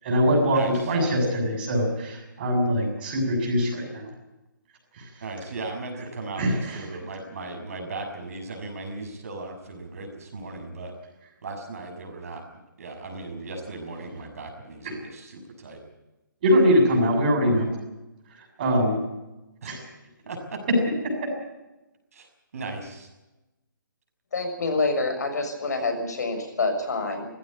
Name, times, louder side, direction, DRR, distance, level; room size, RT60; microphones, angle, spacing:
voice 1, 0.0-4.1 5.0-5.1 6.4-6.8 14.8-14.9 16.4-17.7 18.6-19.0 19.7-19.8, equal, 25° right, 1 dB, 7.3 m, -22 dB
voice 2, 5.2-10.9 11.4-12.4 12.8-15.8 19.6-19.7 20.3-20.6 22.1-22.3 22.5-23.1, right 3 dB, 45° right, 4 dB, 6.2 m, -37 dB
voice 3, 24.3-27.3, left 3 dB, 55° left, 5 dB, 6.7 m, -27 dB
18.5 x 16.0 x 9.8 m, 1.0 s
hypercardioid pair, 175°, 11 cm